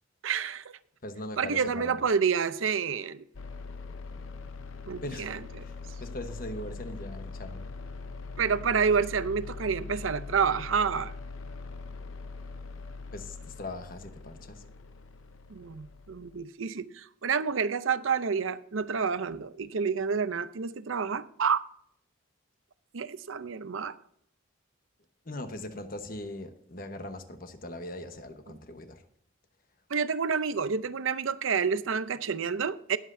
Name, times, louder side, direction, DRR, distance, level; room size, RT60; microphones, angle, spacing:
voice 1, 0.2-0.8 1.4-3.2 4.9-5.4 8.4-11.1 15.5-21.6 22.9-24.0 29.9-33.0, right 6 dB, 80° right, 0.6 m, -29 dB
voice 2, 1.0-2.1 5.0-5.3 5.6-5.7 6.0-7.7 13.1-14.6 25.2-29.0, left 1 dB, 45° left, 1.2 m, -40 dB
sound 1, 3.3-16.4, left 4 dB, 85° left, 0.7 m, -42 dB
19.5 x 7.7 x 2.7 m
head